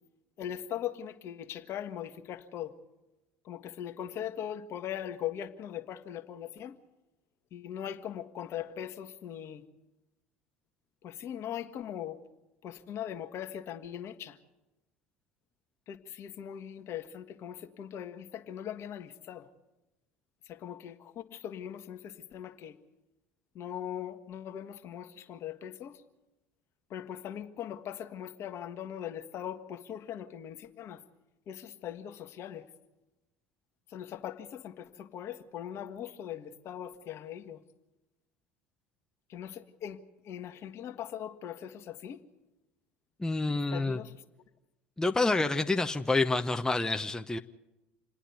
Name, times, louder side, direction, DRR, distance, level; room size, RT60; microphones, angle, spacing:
voice 1, 0.4-2.7 3.4-6.7 7.5-9.6 11.0-12.2 12.6-14.4 15.9-19.5 20.5-22.8 23.5-26.0 26.9-31.0 31.5-32.7 33.9-37.6 39.3-42.2 43.7-44.2, left 10 dB, 50° left, 1.6 m, -40 dB
voice 2, 43.2-44.0 45.0-47.4, left 3 dB, 10° left, 0.9 m, -28 dB
28.0 x 10.0 x 9.5 m
hypercardioid pair, 75°, 6 cm